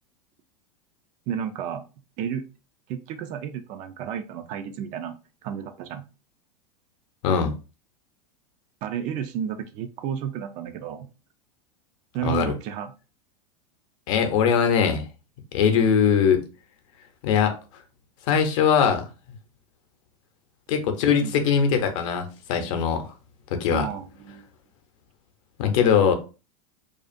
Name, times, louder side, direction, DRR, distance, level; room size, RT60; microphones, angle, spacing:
voice 1, 1.3-1.8 2.2-2.4 2.9-5.1 5.4-6.0 8.8-11.1 12.1-12.9 21.2-21.4 22.5-22.8 23.7-24.5, right 8 dB, 40° right, 0.4 m, -32 dB
voice 2, 7.2-7.5 12.2-12.6 14.1-15.1 15.5-16.4 17.2-17.5 18.3-19.1 20.7-23.1 23.5-23.9 25.6-26.1, left 7 dB, 60° left, 0.6 m, -21 dB
2.5 x 2.4 x 2.4 m
hypercardioid pair, 95°, 19 cm